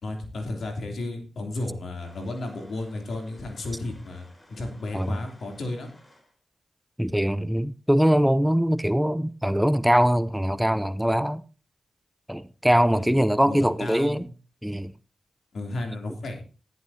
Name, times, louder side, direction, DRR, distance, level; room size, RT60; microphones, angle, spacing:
voice 1, 0.0-5.9 12.9-13.2 13.5-14.3 15.5-16.4, left 2 dB, 75° left, 3.2 m, -33 dB
sound 1, 2.0-6.4, left 1 dB, 30° left, 4.8 m, -56 dB
voice 2, 7.0-11.4 12.3-14.3 14.6-14.9, equal, 5° right, 0.6 m, -22 dB
14.0 x 11.5 x 2.8 m
cardioid pair, 50°, 0 cm